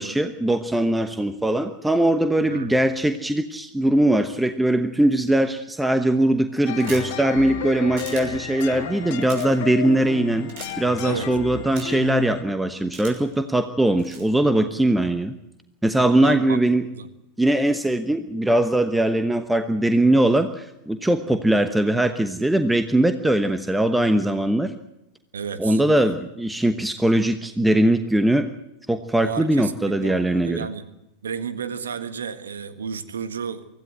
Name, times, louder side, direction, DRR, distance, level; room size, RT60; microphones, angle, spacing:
voice 1, 0.0-10.5 10.8-15.3 15.8-16.8 17.4-24.7 25.6-28.5 28.9-30.7, right 1 dB, 5° right, 9 dB, 1.1 m, -21 dB
voice 2, 2.4-2.8 11.0-11.3 16.2-16.6 16.9-17.1 25.3-26.1 29.2-30.9 31.2-33.7, right 6 dB, 65° right, 10 dB, 1.6 m, -32 dB
sound 1, 6.7-12.4, left 8 dB, 50° left, 2.0 m, -32 dB
sound 2, 6.7-7.2 8.0-8.2 9.1-9.5 10.5-10.7 11.8-12.1 12.9-13.3 14.0-14.3, right 5 dB, 45° right, 6.2 m, -39 dB
24.5 x 15.5 x 7.9 m, 0.91 s
figure-of-eight pair, 90°, 0 cm